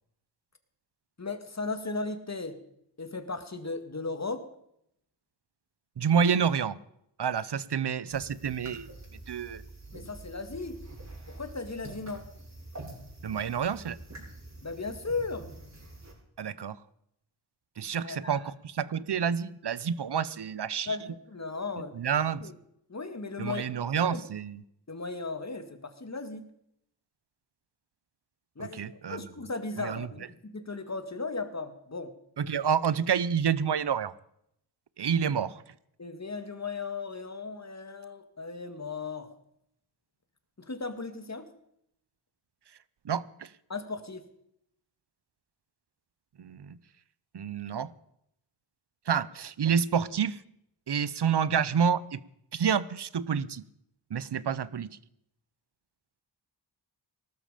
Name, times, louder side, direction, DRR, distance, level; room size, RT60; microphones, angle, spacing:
voice 1, 1.2-2.6 3.0-4.4 9.9-10.8 11.3-12.3 14.6-15.5 18.0-18.5 20.9-22.0 22.4-22.5 22.9-23.6 24.1-24.2 24.9-26.5 28.6-28.8 29.1-32.1 36.0-39.3 40.6-41.5 43.7-44.2, left 3 dB, 35° left, 9 dB, 2.1 m, -36 dB
voice 2, 6.0-6.8 7.2-8.9 9.3-9.6 13.2-14.0 16.4-16.8 17.8-21.0 22.0-22.5 23.4-24.6 28.6-29.3 29.8-30.1 32.4-34.1 35.0-35.6 43.0-43.5 46.4-46.8 47.3-47.9 49.1-50.4 50.9-52.2 52.5-53.6 54.1-54.9, right 7 dB, 60° right, 18 dB, 0.9 m, -28 dB
sound 1, 8.1-16.1, right 2 dB, 35° right, 7.0 m, -46 dB
19.0 x 13.0 x 5.1 m, 0.76 s
cardioid pair, 60°, 46 cm